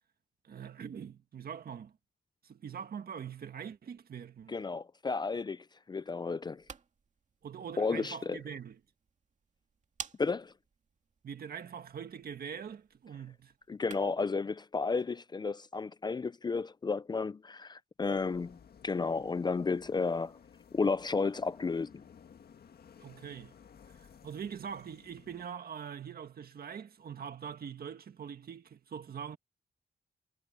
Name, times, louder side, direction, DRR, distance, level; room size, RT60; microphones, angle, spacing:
voice 1, 0.4-1.9 2.4-4.5 7.4-8.8 11.2-13.5 23.0-23.5 24.2-29.4, right 7 dB, 70° right, 1.8 m, -43 dB
voice 2, 4.5-6.6 7.8-8.4 10.2-10.5 13.7-18.6 18.8-20.4 20.7-21.9, left 4 dB, 25° left, 0.4 m, -32 dB
sound 1, 6.4-14.3, right 5 dB, 50° right, 2.2 m, -52 dB
sound 2, 18.0-25.5, left 7 dB, 75° left, 1.8 m, -57 dB
wide cardioid pair, 150°, 16 cm